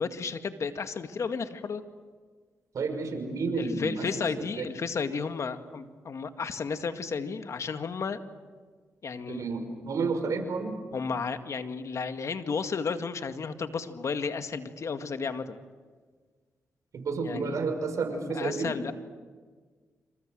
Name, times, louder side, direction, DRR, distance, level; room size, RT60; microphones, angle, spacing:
voice 1, 0.0-1.8 3.6-8.2 9.0-9.4 10.9-15.6 17.2-17.6 18.3-18.9, left 5 dB, 60° left, 8 dB, 2.0 m, -33 dB
voice 2, 2.7-4.1 4.6-4.7 9.3-10.7 16.9-18.7, right 4 dB, 70° right, 6 dB, 5.8 m, -30 dB
28.0 x 27.0 x 7.9 m, 1.5 s
supercardioid pair, 55°, 6 cm